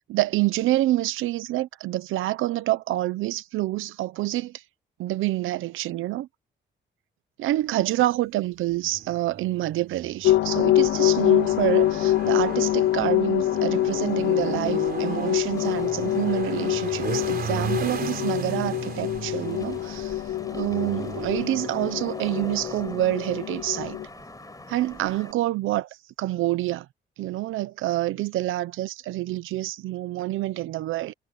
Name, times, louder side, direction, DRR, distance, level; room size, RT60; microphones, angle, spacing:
voice 1, 0.0-4.6 5.0-6.3 7.4-20.2 20.5-24.0 24.7-25.9 26.2-26.9 27.2-31.1, right 16 dB, 85° right, 1.0 m, -27 dB
sound 1, 8.6-25.2, right 7 dB, 50° right, 4.0 m, -37 dB
sound 2, 10.2-24.0, left 14 dB, 75° left, 0.4 m, -25 dB
Wind / Rain, 13.8-25.3, left 2 dB, 15° left, 7.7 m, -44 dB
cardioid pair, 90°, 20 cm